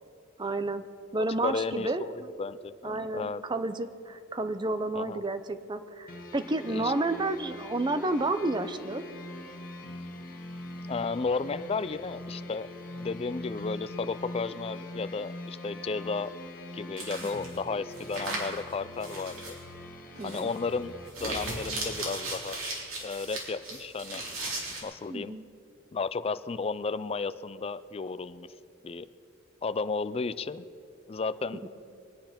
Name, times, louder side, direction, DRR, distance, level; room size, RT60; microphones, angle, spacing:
voice 1, 0.4-0.9 1.1-2.0 2.8-9.0 17.2-17.4 20.2-20.5 25.1-25.4 31.6-31.7, right 2 dB, 20° right, 11 dB, 0.6 m, -31 dB
voice 2, 1.4-3.5 5.0-5.2 6.7-6.9 10.9-12.7 13.0-16.3 16.7-19.6 20.2-22.6 23.0-24.2 24.8-25.4 25.9-28.5 28.8-29.1 29.6-30.6 31.1-31.7, left 4 dB, 30° left, 14 dB, 0.4 m, -33 dB
sound 1, 6.1-21.1, left 1 dB, 45° left, 1.3 m, -43 dB
sound 2, 17.0-17.5 17.9-18.6 19.0-19.6 20.1-20.6 21.1-24.8, right 2 dB, 70° right, 3.8 m, -36 dB
24.0 x 8.9 x 5.9 m, 2.7 s
head